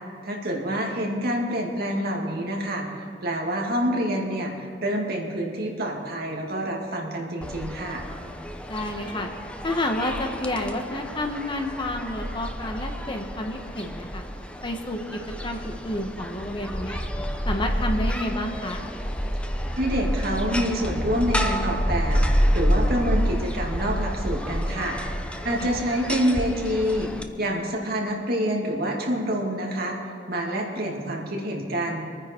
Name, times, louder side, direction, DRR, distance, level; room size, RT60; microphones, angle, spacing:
voice 1, 0.2-8.0 19.8-25.0 25.4-30.0 30.3-32.0, equal, 60° right, -1 dB, 2.3 m, -27 dB
sound 1, 7.4-27.2, equal, 5° left, 0.8 m, -28 dB
voice 2, 8.7-9.3 9.6-14.2 14.6-17.0 17.4-18.8 25.6-25.7, left 1 dB, 25° left, 4 dB, 1.2 m, -30 dB
25.0 x 9.8 x 4.5 m, 2.4 s
head